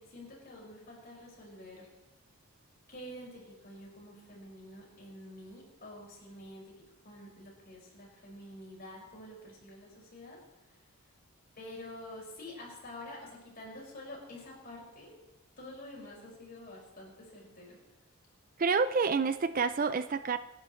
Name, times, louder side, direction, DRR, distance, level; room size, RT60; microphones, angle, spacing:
voice 1, 0.0-1.9 2.9-6.7 7.0-10.4 10.7-10.8 11.5-15.2 15.6-17.8, left 1 dB, 40° left, -3 dB, 5.8 m, -48 dB
voice 2, 18.6-20.4, right 5 dB, 40° right, 12 dB, 0.4 m, -28 dB
26.5 x 11.0 x 3.2 m, 1.0 s
head